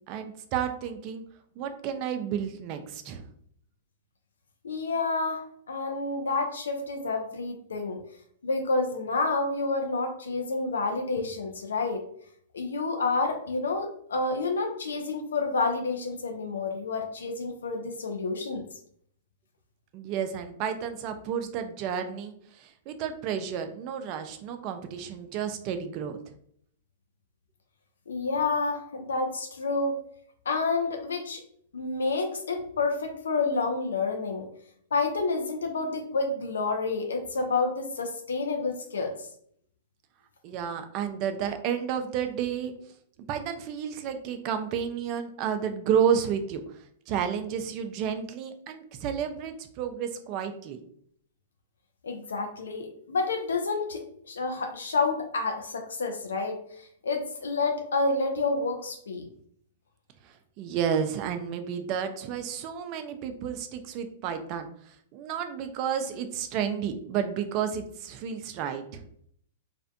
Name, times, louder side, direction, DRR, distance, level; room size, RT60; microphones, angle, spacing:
voice 1, 0.1-1.2 1.6-3.3 19.9-26.2 40.4-42.7 43.3-46.6 47.1-50.8 60.6-64.7 65.1-69.0, right 8 dB, 40° right, 7 dB, 0.4 m, -31 dB
voice 2, 4.6-8.0 8.4-12.0 12.5-18.6 28.1-30.0 30.5-31.4 31.7-34.5 34.9-39.3 52.0-59.2, left 3 dB, 85° left, 4 dB, 0.3 m, -29 dB
2.4 x 2.1 x 2.5 m, 0.65 s
hypercardioid pair, 120°, 0 cm